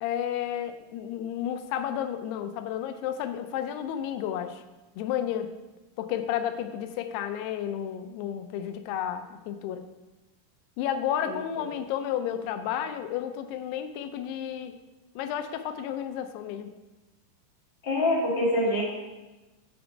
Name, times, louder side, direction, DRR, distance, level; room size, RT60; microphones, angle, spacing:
voice 1, 0.0-4.6 5.0-5.5 6.0-9.9 10.8-14.7 15.2-16.7, left 10 dB, 90° left, 9 dB, 2.6 m, -32 dB
voice 2, 17.8-18.8, left 1 dB, 20° left, -6 dB, 1.7 m, -24 dB
8.8 x 5.1 x 4.9 m, 1.1 s
omnidirectional pair, 4.6 m